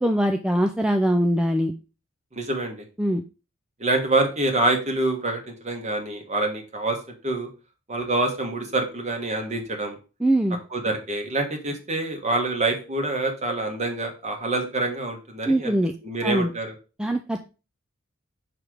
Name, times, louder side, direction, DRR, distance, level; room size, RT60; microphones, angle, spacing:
voice 1, 0.0-1.7 3.0-3.2 10.2-10.6 15.5-15.9 16.2-16.5 17.0-17.4, right 1 dB, 5° right, 4 dB, 0.3 m, -22 dB
voice 2, 2.3-2.8 3.8-7.0 7.2-7.5 7.9-10.0 10.7-15.7 16.0-16.7, right 2 dB, 35° right, 3 dB, 1.4 m, -26 dB
6.1 x 3.3 x 4.9 m, 0.32 s
head